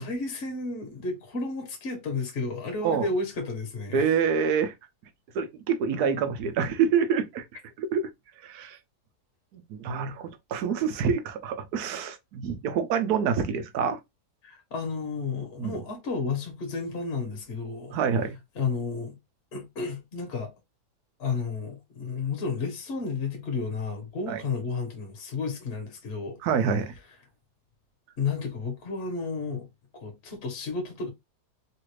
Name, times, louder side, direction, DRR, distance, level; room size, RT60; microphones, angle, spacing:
voice 1, 0.0-4.1 14.4-17.9 18.5-19.2 19.5-20.5 21.2-26.4 28.2-29.7 29.9-31.1, left 4 dB, 45° left, 1.2 m, -32 dB
voice 2, 3.9-4.7 5.3-7.4 7.8-8.1 8.4-8.8 9.5-14.0 15.6-15.8 17.9-18.4 24.3-24.4 26.4-26.9, right 6 dB, 75° right, 1.1 m, -27 dB
3.2 x 2.5 x 3.1 m
omnidirectional pair, 1.8 m